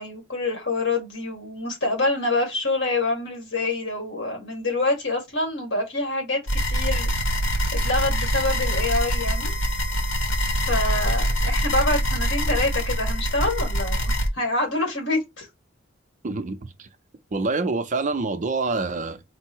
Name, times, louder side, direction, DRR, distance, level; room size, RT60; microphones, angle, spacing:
voice 1, 0.0-7.1 7.7-9.5 10.6-15.5, left 2 dB, 60° left, 2.0 m, -26 dB
sound 1, 6.5-14.3, equal, 80° left, 1.1 m, -24 dB
voice 2, 16.2-16.9 17.3-19.2, right 3 dB, 40° right, 0.5 m, -26 dB
4.4 x 2.1 x 4.4 m
head